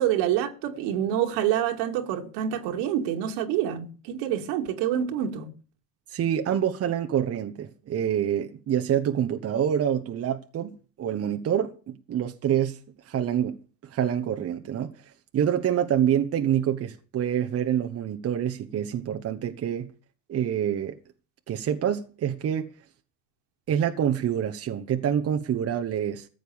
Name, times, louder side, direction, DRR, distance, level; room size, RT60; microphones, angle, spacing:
voice 1, 0.0-5.5, right 10 dB, 65° right, 2.3 m, -27 dB
voice 2, 6.1-12.8 13.1-13.6 13.9-14.9 15.3-19.9 20.3-21.0 21.5-22.7 23.7-26.3, right 9 dB, 35° right, 1.1 m, -26 dB
14.5 x 7.9 x 7.0 m
supercardioid pair, 105°, 45 cm